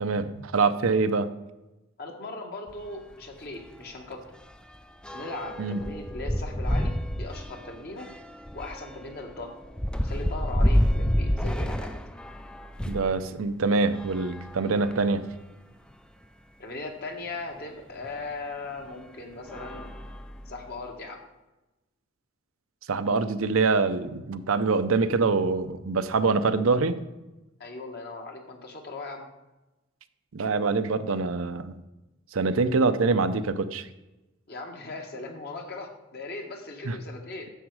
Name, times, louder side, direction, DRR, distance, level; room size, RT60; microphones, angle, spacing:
voice 1, 0.0-1.3 5.6-5.8 12.9-15.2 22.9-27.0 30.3-31.8 32.3-33.9 36.8-37.0, right 4 dB, 85° right, 10 dB, 0.6 m, -25 dB
voice 2, 2.0-4.2 5.1-8.1 8.5-9.5 10.0-11.9 16.6-19.9 20.4-21.2 27.6-29.3 34.5-37.5, left 2 dB, 50° left, 2 dB, 1.6 m, -38 dB
sound 1, 2.7-2.9 3.2-3.3 3.7-13.2 13.9-15.2 15.9-16.0 16.2-16.3 18.0-18.2 18.8-19.0 19.4-20.7, equal, 5° left, 0.4 m, -29 dB
10.0 x 7.3 x 4.7 m, 1.0 s
head